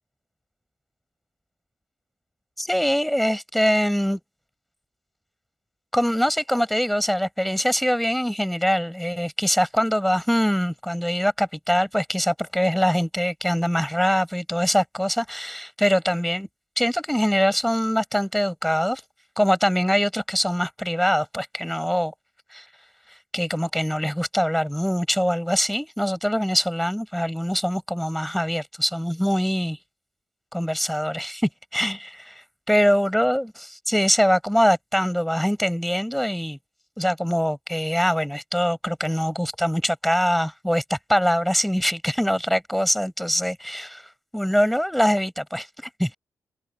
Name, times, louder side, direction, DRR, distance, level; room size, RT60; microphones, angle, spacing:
voice 1, 2.6-4.2 5.9-16.5 16.8-19.0 19.4-22.1 22.5-22.6 23.3-29.8 30.5-36.6 37.0-44.0 44.3-46.1, equal, ahead, 6.9 m, -23 dB
wide cardioid pair, 125°, 7 cm